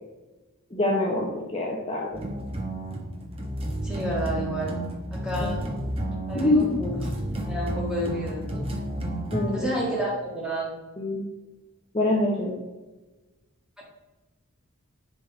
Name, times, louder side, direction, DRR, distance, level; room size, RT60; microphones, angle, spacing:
voice 1, 0.7-2.2 5.4-5.5 6.3-6.8 9.3-9.7 11.0-11.2 11.9-12.5, left 2 dB, 25° left, -2 dB, 0.9 m, -25 dB
sound 1, 2.1-9.6, right 1 dB, 25° right, 1.0 m, -31 dB
voice 2, 3.8-4.8 5.1-5.7 6.3-7.0 7.4-8.7 9.5-10.8 13.8-13.9, equal, 5° right, -5 dB, 2.0 m, -30 dB
10.0 x 4.0 x 4.4 m, 1.2 s
head